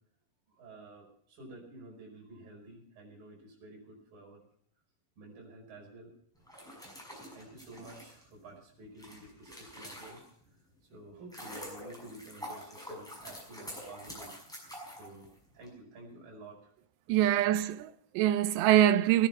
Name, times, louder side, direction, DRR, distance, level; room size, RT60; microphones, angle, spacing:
voice 1, 0.5-4.5 5.2-6.1 7.3-10.2 10.8-16.7 17.1-17.4, right 2 dB, 50° right, 6.8 m, -51 dB
sound 1, 6.4-10.5 11.0-15.7, equal, ahead, 5.6 m, -46 dB
voice 2, 17.1-19.3, right 12 dB, 80° right, 2.8 m, -24 dB
18.5 x 10.5 x 5.8 m
omnidirectional pair, 5.3 m